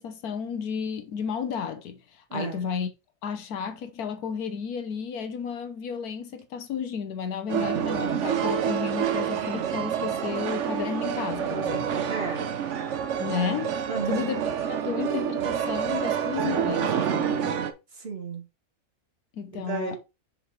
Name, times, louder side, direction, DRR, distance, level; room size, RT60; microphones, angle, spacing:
voice 1, 0.0-2.0 2.3-2.9 3.2-12.1 13.2-13.8 14.1-14.4 14.8-17.6 19.3-20.0, left 7 dB, 80° left, 1.4 m, -32 dB
voice 2, 2.3-2.7 12.1-12.5 13.9-14.4 17.9-18.5 19.6-20.0, right 5 dB, 40° right, 1.7 m, -33 dB
sound 1, 7.5-17.7, right 8 dB, 60° right, 0.9 m, -28 dB
6.0 x 5.4 x 3.2 m
omnidirectional pair, 1.6 m